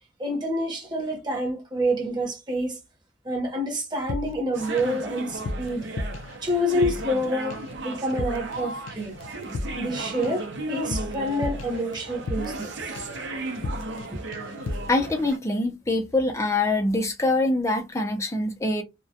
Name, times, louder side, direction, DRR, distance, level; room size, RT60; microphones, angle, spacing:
voice 1, 0.2-2.8 3.2-5.9 6.4-9.2 9.8-12.9 14.1-14.2, equal, 20° right, 0.8 m, -28 dB
sound 1, 4.1-5.0 5.3-7.2 7.5-7.8 8.1-8.6 8.9-12.7 13.0-13.3 13.6-14.1 14.3-15.0, left 2 dB, 80° left, 0.4 m, -34 dB
sound 2, 4.5-15.4, right 2 dB, 60° right, 0.5 m, -35 dB
voice 2, 14.9-18.8, left 2 dB, 15° left, 0.4 m, -24 dB
2.2 x 2.1 x 2.7 m
head